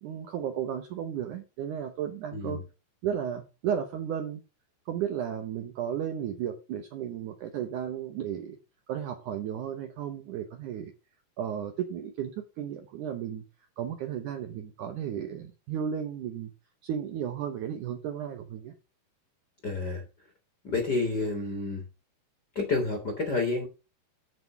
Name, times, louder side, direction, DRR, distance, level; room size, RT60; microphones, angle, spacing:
voice 1, 0.0-2.6 3.0-4.4 4.9-8.6 8.9-10.9 11.4-13.4 13.8-16.5 16.8-18.7, right 9 dB, 70° right, 7 dB, 2.0 m, -34 dB
voice 2, 2.3-2.6 19.6-20.0 20.6-21.8 22.5-23.7, left 3 dB, 45° left, 3 dB, 1.4 m, -29 dB
9.5 x 6.0 x 5.8 m, 0.30 s
omnidirectional pair, 4.6 m